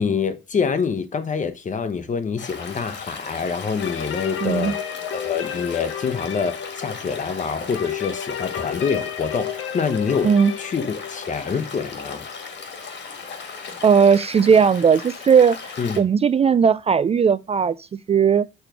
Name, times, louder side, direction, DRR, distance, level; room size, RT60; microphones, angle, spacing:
voice 1, 0.0-10.3 10.6-12.3 15.8-16.0, left 5 dB, 40° left, 1.0 m, -26 dB
Stream, 2.4-16.0, left 5 dB, 65° left, 1.8 m, -37 dB
sound 1, 3.8-13.4, left 9 dB, 80° left, 0.7 m, -33 dB
voice 2, 4.4-4.7 10.2-10.5 13.8-15.6 16.0-17.8 18.1-18.5, right 6 dB, 30° right, 0.4 m, -17 dB
7.0 x 3.3 x 6.0 m
cardioid pair, 90°, 20 cm